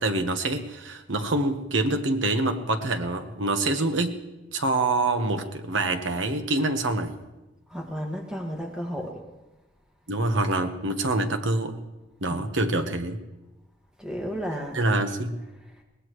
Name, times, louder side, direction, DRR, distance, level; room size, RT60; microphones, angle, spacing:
voice 1, 0.0-4.2 4.5-7.2 10.1-11.8 12.2-13.2 14.7-15.4, right 2 dB, 75° right, 6 dB, 1.3 m, -26 dB
voice 2, 7.7-9.2 12.3-12.5 14.0-14.8, equal, 5° right, 0 dB, 1.9 m, -33 dB
22.0 x 18.5 x 3.2 m, 1.0 s
head